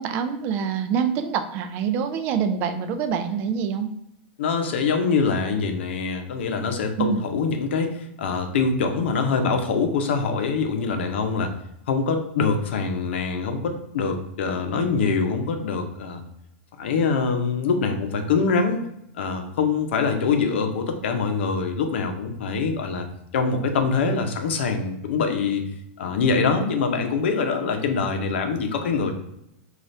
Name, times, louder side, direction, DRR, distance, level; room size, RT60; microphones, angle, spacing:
voice 1, 0.0-3.9 7.0-7.2, right 7 dB, 35° right, 8 dB, 0.4 m, -25 dB
voice 2, 4.4-11.5 11.9-16.2 16.8-18.8 19.2-23.1 23.3-25.6 26.0-29.1, left 5 dB, 85° left, 5 dB, 0.6 m, -24 dB
4.0 x 2.4 x 3.2 m, 0.79 s
supercardioid pair, 160°, 6 cm